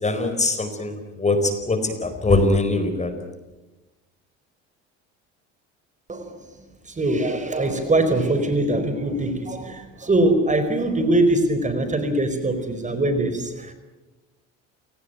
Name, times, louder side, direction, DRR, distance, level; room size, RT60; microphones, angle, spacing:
voice 1, 0.0-3.1, left 2 dB, 20° left, 8 dB, 4.6 m, -22 dB
voice 2, 6.1-6.5 6.8-13.7, right 1 dB, 20° right, 9 dB, 4.6 m, -22 dB
28.5 x 19.0 x 9.3 m, 1.1 s
supercardioid pair, 85°, 33 cm